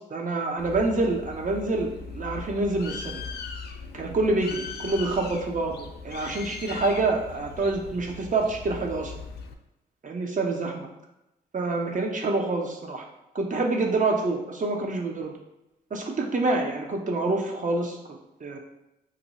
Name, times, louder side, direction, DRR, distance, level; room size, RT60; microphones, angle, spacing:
voice 1, 0.1-3.3 3.9-9.1 10.0-10.9 11.5-13.0 13.3-15.4 15.9-18.0 18.4-18.6, right 3 dB, 40° right, 1 dB, 0.8 m, -27 dB
Bird, 0.6-9.5, left 5 dB, 55° left, 0.4 m, -39 dB
2.6 x 2.2 x 4.1 m, 0.91 s
supercardioid pair, 50°, 20 cm